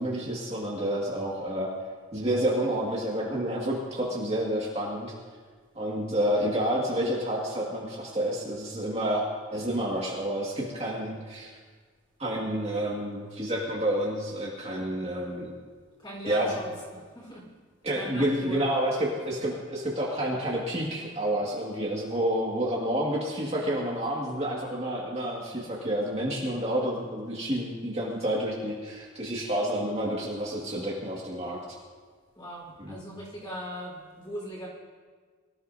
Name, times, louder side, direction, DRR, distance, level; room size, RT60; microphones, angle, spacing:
voice 1, 0.0-1.7 2.1-5.1 5.8-9.2 9.5-11.5 12.2-15.5 16.3-16.5 17.8-31.6 32.8-33.0, right 1 dB, 30° right, -4 dB, 2.1 m, -29 dB
voice 2, 16.0-17.5 17.9-18.6 32.3-34.7, equal, 20° left, -3 dB, 4.6 m, -40 dB
24.0 x 14.5 x 2.8 m, 1.5 s
head